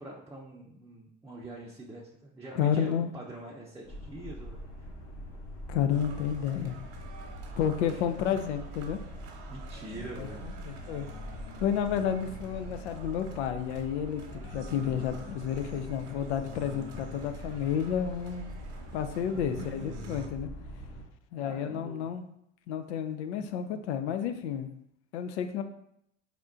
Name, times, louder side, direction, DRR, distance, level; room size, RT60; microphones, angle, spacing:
voice 1, 0.0-4.7 7.8-8.0 9.5-10.4 19.3-20.2 21.4-22.1 23.3-23.8, right 2 dB, 10° right, -6 dB, 0.7 m, -45 dB
voice 2, 2.6-3.1 5.7-6.8 7.6-9.0 10.2-11.1 11.6-18.5 18.9-20.5 21.3-22.2 22.7-24.7 25.1-25.6, left 8 dB, 75° left, 8 dB, 0.5 m, -31 dB
sound 1, 3.8-21.0, equal, 45° left, 1.2 m, -44 dB
sound 2, 5.9-20.3, right 1 dB, 65° right, 0.9 m, -48 dB
4.3 x 3.5 x 2.5 m, 0.77 s
hypercardioid pair, 70°, 34 cm